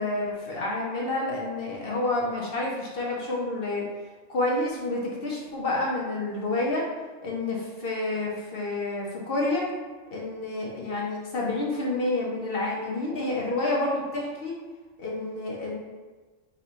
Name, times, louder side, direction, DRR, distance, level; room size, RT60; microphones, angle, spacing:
voice 1, 0.0-3.9 4.3-6.8 7.2-9.7 10.1-14.5 15.0-15.7, left 2 dB, 55° left, -3 dB, 0.9 m, -29 dB
3.9 x 2.3 x 4.3 m, 1.3 s
omnidirectional pair, 1.3 m